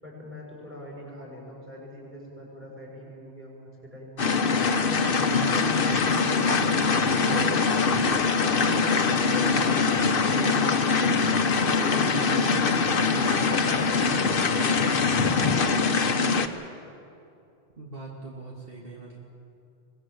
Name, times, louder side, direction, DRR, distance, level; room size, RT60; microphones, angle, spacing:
voice 1, 0.0-4.5 11.5-14.7, left 1 dB, 10° right, -3 dB, 6.6 m, -43 dB
sound 1, 4.2-16.5, left 4 dB, 60° left, 1.2 m, -23 dB
voice 2, 17.8-19.2, right 3 dB, 60° right, -3 dB, 2.7 m, -41 dB
24.0 x 19.0 x 7.9 m, 2.6 s
omnidirectional pair, 1.1 m